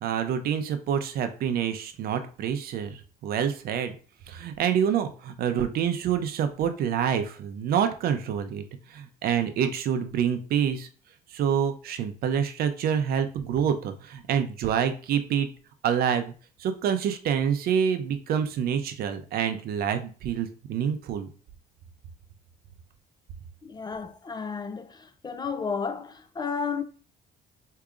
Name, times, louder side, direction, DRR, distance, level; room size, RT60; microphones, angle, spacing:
voice 1, 0.0-3.9 4.3-8.6 8.9-10.9 11.3-15.5 15.8-16.3 16.6-21.3, right 8 dB, 65° right, 0.6 m, -27 dB
voice 2, 23.6-26.8, left 5 dB, 25° left, 0.4 m, -32 dB
4.8 x 2.7 x 2.4 m
cardioid pair, 110°, 17 cm